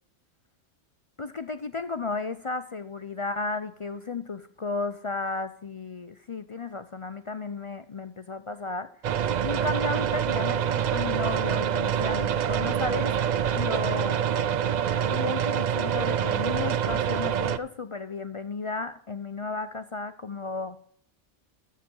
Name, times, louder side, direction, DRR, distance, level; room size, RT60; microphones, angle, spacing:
voice 1, 1.2-13.1 13.5-14.2 15.0-20.8, left 3 dB, 50° left, 12 dB, 0.3 m, -34 dB
sound 1, 9.0-17.6, right 8 dB, 65° right, 0.4 m, -26 dB
14.0 x 5.8 x 5.4 m, 0.64 s
omnidirectional pair, 1.2 m